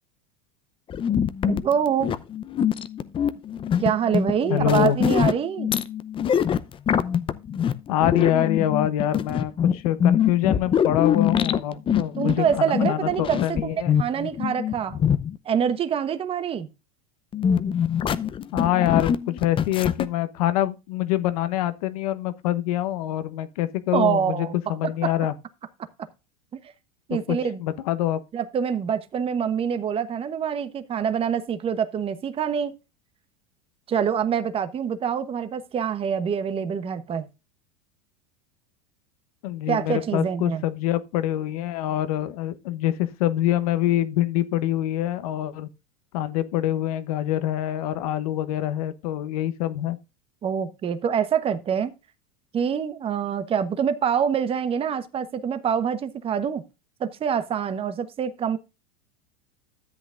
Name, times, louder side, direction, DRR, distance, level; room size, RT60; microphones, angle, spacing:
sound 1, 0.9-15.4 17.3-20.1, left 8 dB, 25° left, 0.7 m, -24 dB
voice 1, 1.4-2.2 3.8-5.7 12.2-15.0 15.4-16.7 23.9-24.5 25.0-25.1 27.1-27.6 28.3-32.8 33.9-37.3 39.7-40.6 50.4-51.9 52.5-56.6 57.0-58.6, right 8 dB, 30° right, 1.1 m, -25 dB
voice 2, 4.5-5.0 7.9-14.0 18.5-25.3 27.1-28.2 39.4-45.7 46.1-50.0, left 12 dB, 70° left, 1.0 m, -25 dB
13.0 x 8.1 x 2.5 m
hypercardioid pair, 105°, 19 cm